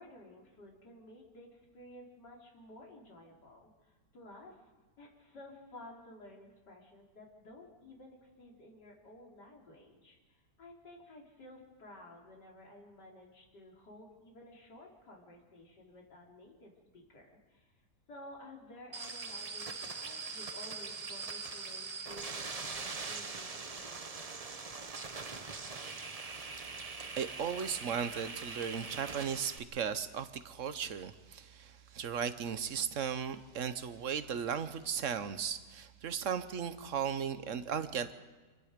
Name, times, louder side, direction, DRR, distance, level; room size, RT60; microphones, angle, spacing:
voice 1, 0.0-4.7 5.0-17.7 18.1-23.9, left 1 dB, 90° left, -2 dB, 3.9 m, -54 dB
sound 1, 18.9-29.6, right 4 dB, 30° right, 0.7 m, -42 dB
voice 2, 27.2-38.1, right 7 dB, 55° right, 12 dB, 1.1 m, -36 dB
26.5 x 20.5 x 5.1 m, 1.3 s
omnidirectional pair, 1.8 m